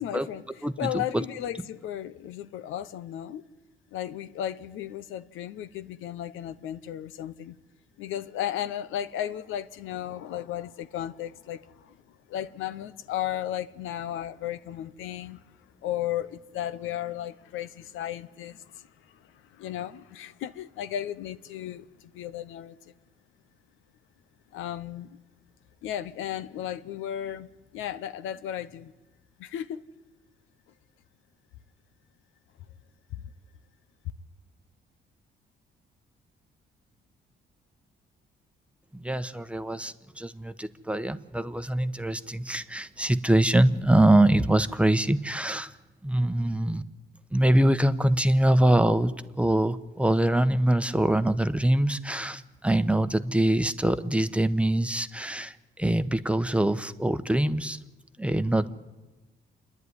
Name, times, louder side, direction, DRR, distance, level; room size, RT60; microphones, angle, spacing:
voice 1, 0.0-3.4 3.9-7.6 8.0-12.0 12.3-15.4 15.8-22.8 24.5-25.2 25.8-28.9 29.4-29.8 33.1-33.2, left 11 dB, 90° left, 0.8 m, -35 dB
voice 2, 38.9-45.7 46.0-46.8 47.3-55.5 55.8-57.8 58.2-58.7, right 1 dB, 5° right, 0.9 m, -24 dB
28.0 x 11.0 x 9.7 m
cardioid pair, 90°, 20 cm